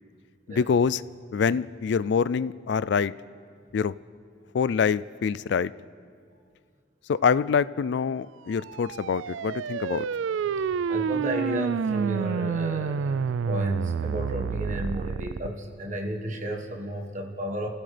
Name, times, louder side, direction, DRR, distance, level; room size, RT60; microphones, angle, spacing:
voice 1, 0.5-1.0 1.3-3.1 3.7-3.9 4.5-5.7 7.1-10.1, left 6 dB, 65° left, 18 dB, 0.3 m, -25 dB
sound 1, 8.6-15.5, right 6 dB, 80° right, 0.3 m, -29 dB
voice 2, 10.5-17.7, equal, 40° right, 2 dB, 1.5 m, -33 dB
27.5 x 15.5 x 3.4 m, 2.1 s
head